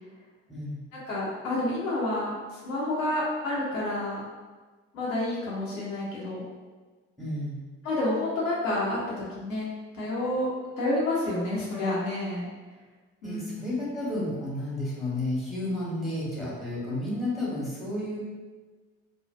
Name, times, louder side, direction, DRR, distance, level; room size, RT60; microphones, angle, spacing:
voice 1, 0.5-0.8 7.2-7.6 13.2-18.2, left 1 dB, ahead, -7 dB, 1.0 m, -31 dB
voice 2, 1.1-4.2 4.9-6.4 7.8-9.7 9.9-10.5 10.8-12.5 13.2-13.4, left 1 dB, 80° left, -6 dB, 0.6 m, -29 dB
2.5 x 2.1 x 2.3 m, 1.3 s
figure-of-eight pair, 40°, 39 cm